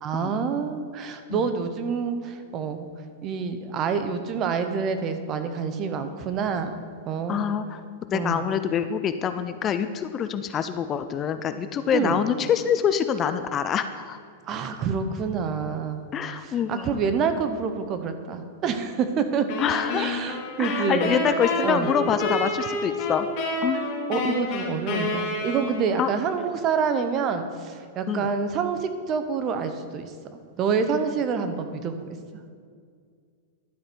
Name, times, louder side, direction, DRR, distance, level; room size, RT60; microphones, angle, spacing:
voice 1, 0.0-2.9 3.2-7.4 8.1-8.4 11.9-12.2 14.5-16.1 16.4-19.5 19.9-21.2 21.6-21.9 24.1-30.1 30.6-32.1, right 6 dB, 35° right, 9 dB, 0.7 m, -27 dB
voice 2, 7.3-7.8 8.1-14.2 16.1-17.0 19.6-20.1 20.6-23.3 23.6-23.8 26.0-26.1 28.1-28.3, left 8 dB, 25° left, 10 dB, 0.3 m, -26 dB
sound 1, 19.5-26.1, left 2 dB, 45° left, 2.3 m, -29 dB
11.5 x 4.9 x 4.5 m, 2.1 s
hypercardioid pair, 135°, 0 cm